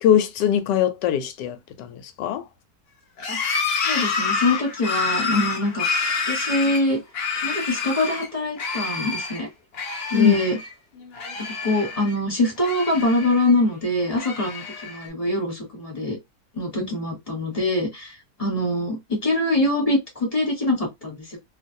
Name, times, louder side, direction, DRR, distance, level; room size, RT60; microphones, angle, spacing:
voice 1, 0.0-2.4 10.1-10.4, left 9 dB, 85° left, 1.2 m, -21 dB
sound 1, 3.2-8.3 8.6-9.4 9.7-10.7 11.0-12.2 12.6-13.6 14.1-15.1, left 4 dB, 60° left, 0.6 m, -28 dB
voice 2, 3.8-5.9 6.3-7.0 7.4-9.5 10.1-10.6 11.6-16.2 16.5-21.4, left 1 dB, 25° left, 1.1 m, -24 dB
2.6 x 2.5 x 2.6 m
omnidirectional pair, 1.8 m